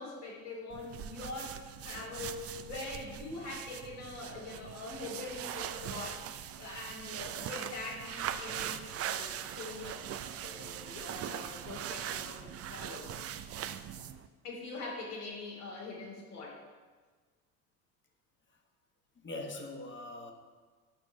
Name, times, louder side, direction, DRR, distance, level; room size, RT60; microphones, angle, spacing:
voice 1, 0.0-6.3 6.6-10.0 10.4-13.1 14.4-16.6, left 3 dB, 80° left, -4 dB, 2.8 m, -43 dB
sound 1, 0.7-14.3, right 10 dB, 35° right, 0.5 m, -41 dB
voice 2, 19.2-20.3, left 2 dB, 25° left, 4 dB, 1.3 m, -42 dB
8.1 x 5.9 x 5.4 m, 1.4 s
hypercardioid pair, 60°, 45 cm